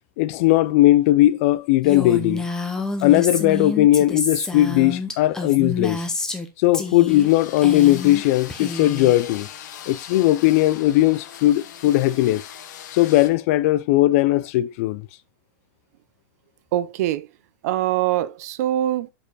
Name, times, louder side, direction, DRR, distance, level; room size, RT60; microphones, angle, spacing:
voice 1, 0.2-2.4 3.0-6.0 6.6-9.5 9.9-12.4 12.9-15.0, left 15 dB, 40° left, 0.4 m, -18 dB
Female speech woman speaking, 1.8-6.5 6.7-7.3 7.6-8.2 8.5-9.2, left 3 dB, 5° left, 0.8 m, -28 dB
sound 1, 7.1-13.3, left 9 dB, 60° left, 1.3 m, -40 dB
voice 2, 16.7-17.3 17.6-19.1, right 13 dB, 50° right, 0.6 m, -23 dB
6.7 x 5.2 x 4.1 m
supercardioid pair, 165°, 11 cm